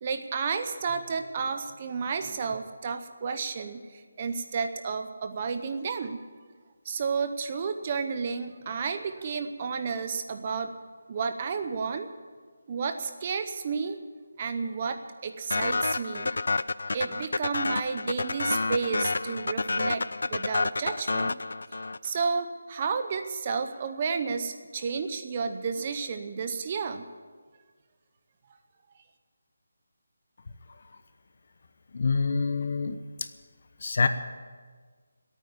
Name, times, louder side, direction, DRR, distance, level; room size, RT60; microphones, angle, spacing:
voice 1, 0.0-6.2 6.8-10.7 11.1-12.1 12.7-14.0 14.4-16.4 16.8-20.0 20.3-21.4 22.0-27.1, right 5 dB, 25° right, 8 dB, 0.7 m, -31 dB
sound 1, 15.5-22.2, left 3 dB, 75° left, 0.4 m, -29 dB
voice 2, 31.9-33.3 33.8-34.1, left 4 dB, 45° left, 10 dB, 1.0 m, -26 dB
16.5 x 9.0 x 9.6 m, 1.5 s
figure-of-eight pair, 175°, 0 cm